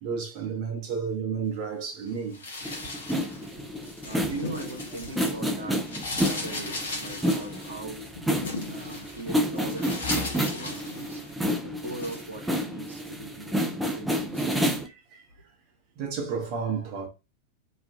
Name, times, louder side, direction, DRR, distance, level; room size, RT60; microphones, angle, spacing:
voice 1, 0.0-2.4 10.1-10.3 14.8-15.2 16.0-17.1, right 6 dB, 40° right, 0.7 m, -32 dB
sound 1, 2.3-5.5 5.8-11.4 11.8-12.3, left 2 dB, 65° left, 0.8 m, -37 dB
sound 2, 2.6-14.9, equal, 5° right, 0.4 m, -30 dB
voice 2, 4.1-5.9 6.2-8.1 8.7-11.2 11.6-14.7, right 2 dB, 75° right, 0.7 m, -40 dB
sound 3, 6.0-6.5 10.0-10.5, left 8 dB, 30° left, 1.1 m, -40 dB
2.4 x 2.3 x 2.4 m
figure-of-eight pair, 90°, 0 cm